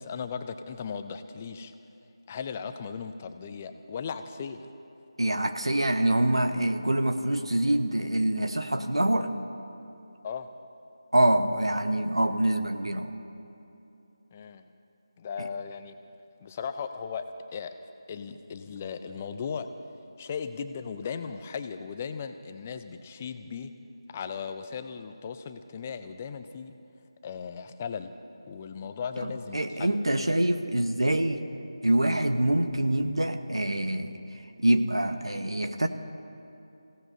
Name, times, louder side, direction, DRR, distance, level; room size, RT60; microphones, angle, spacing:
voice 1, 0.0-1.7 2.3-4.7 10.2-10.5 14.3-14.7 15.2-15.9 16.4-17.3 17.5-17.7 18.1-19.7 20.2-23.7 24.1-26.7 27.2-28.1 28.5-30.0, left 6 dB, 20° left, 9 dB, 0.5 m, -37 dB
voice 2, 5.2-9.3 11.1-13.2 15.4-15.5 29.2-31.4 31.8-35.9, right 1 dB, 85° right, 7 dB, 1.1 m, -25 dB
28.0 x 17.0 x 2.7 m, 2.8 s
figure-of-eight pair, 160°, 3 cm